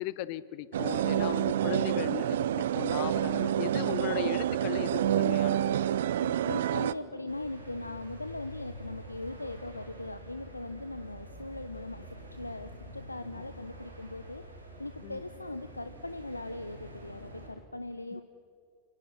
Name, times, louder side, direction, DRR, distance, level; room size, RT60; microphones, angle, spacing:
voice 1, 0.0-5.7 15.0-15.2 18.1-18.2, left 15 dB, 45° left, 18 dB, 0.8 m, -37 dB
sound 1, 0.7-6.9, right 11 dB, 60° right, 0.6 m, -28 dB
voice 2, 1.0-1.4 6.2-12.0 12.3-18.2, left 2 dB, 85° left, 10 dB, 0.8 m, -40 dB
sound 2, 7.3-17.5, right 1 dB, 85° right, 7.1 m, -47 dB
29.5 x 19.0 x 6.1 m, 2.3 s
figure-of-eight pair, 90°, 0 cm